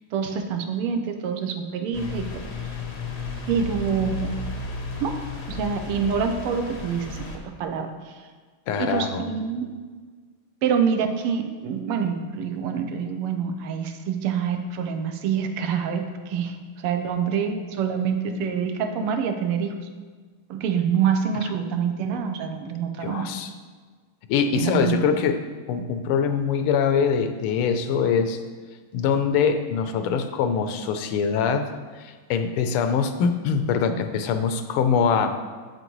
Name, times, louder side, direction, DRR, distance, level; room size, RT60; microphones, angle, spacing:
voice 1, 0.1-2.3 2.6-2.7 3.5-4.3 5.0-5.2 5.5-8.2 8.8-9.7 10.6-19.8 20.5-23.3 24.5-25.0, right 7 dB, 90° right, 6 dB, 1.6 m, -26 dB
sound 1, 1.9-7.4, left 3 dB, 60° left, 0.6 m, -33 dB
voice 2, 8.7-9.2 23.0-23.5 24.3-25.4 25.7-28.4 28.9-31.7 32.0-35.4, left 6 dB, 85° left, 8 dB, 1.5 m, -23 dB
7.8 x 7.8 x 3.0 m, 1.5 s
omnidirectional pair, 2.4 m